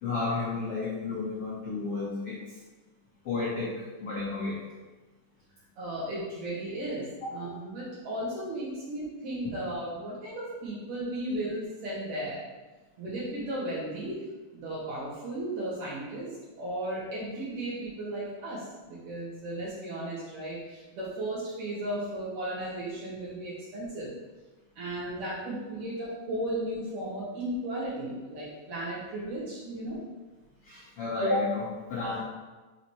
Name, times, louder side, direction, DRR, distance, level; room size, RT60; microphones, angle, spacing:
voice 1, 0.0-2.4 3.2-4.6 7.2-7.3 9.4-9.5 30.6-32.2, left 3 dB, 75° left, -6 dB, 1.3 m, -31 dB
voice 2, 5.8-12.4 13.0-14.2 14.5-16.3 16.6-24.1 24.8-30.0, right 1 dB, 60° right, -8 dB, 3.0 m, -35 dB
6.5 x 4.1 x 4.5 m, 1.2 s
omnidirectional pair, 4.3 m